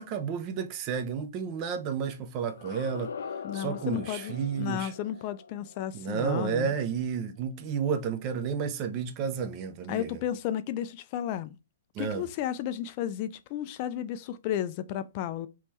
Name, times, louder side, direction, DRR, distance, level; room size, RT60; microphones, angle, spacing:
voice 1, 0.0-3.1 3.5-4.9 5.9-10.1 11.9-12.3, right 7 dB, 30° right, 0.6 m, -31 dB
sound 1, 2.5-7.4, left 6 dB, 85° left, 0.6 m, -43 dB
voice 2, 3.4-6.7 9.9-11.6 12.0-15.5, left 11 dB, 35° left, 0.3 m, -33 dB
3.5 x 3.0 x 4.2 m
hypercardioid pair, 160°, 0 cm